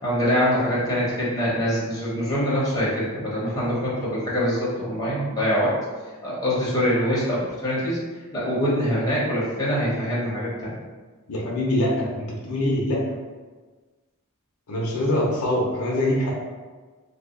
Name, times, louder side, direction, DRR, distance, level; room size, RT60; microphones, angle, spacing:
voice 1, 0.0-5.8 6.2-8.0 8.3-10.7, equal, 15° left, -8 dB, 1.0 m, -24 dB
voice 2, 11.3-13.0 14.7-16.3, left 1 dB, 75° left, -3 dB, 0.6 m, -24 dB
2.7 x 2.3 x 3.7 m, 1.4 s
head